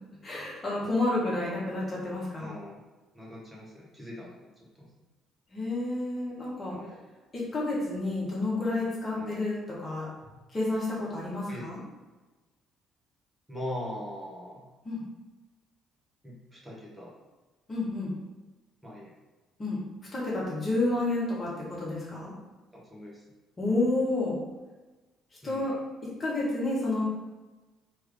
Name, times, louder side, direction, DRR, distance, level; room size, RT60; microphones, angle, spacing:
voice 1, 0.2-2.5 5.5-6.8 7.3-10.1 10.5-11.8 14.8-15.0 17.7-18.1 19.6-19.8 20.1-22.3 23.6-24.4 25.4-25.8 26.2-27.0, left 2 dB, 30° left, -6 dB, 1.4 m, -30 dB
voice 2, 2.4-2.8 3.1-4.4 4.7-4.9 6.7-7.1 9.1-9.4 11.5-11.8 13.5-14.7 16.2-17.1 18.8-19.1 22.7-23.2 25.4-25.8, left 1 dB, 10° right, -5 dB, 1.5 m, -41 dB
3.3 x 3.2 x 3.7 m, 1.2 s
figure-of-eight pair, 50°, 0 cm